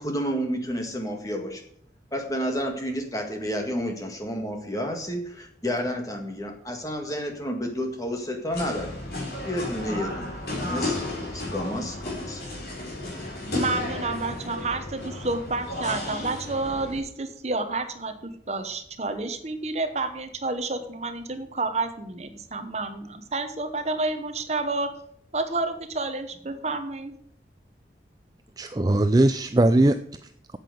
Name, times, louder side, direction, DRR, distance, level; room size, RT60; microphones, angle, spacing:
voice 1, 0.0-1.6 2.1-8.9 9.4-10.3 10.7-11.1 11.3-12.4, equal, 20° left, 3 dB, 1.8 m, -30 dB
sound 1, 8.5-17.0, left 2 dB, 60° left, 4.1 m, -33 dB
voice 2, 13.5-24.9 25.3-27.1, right 3 dB, 35° right, 9 dB, 1.0 m, -30 dB
voice 3, 28.6-30.6, right 1 dB, 20° right, 9 dB, 0.4 m, -21 dB
8.8 x 7.8 x 7.8 m, 0.67 s
head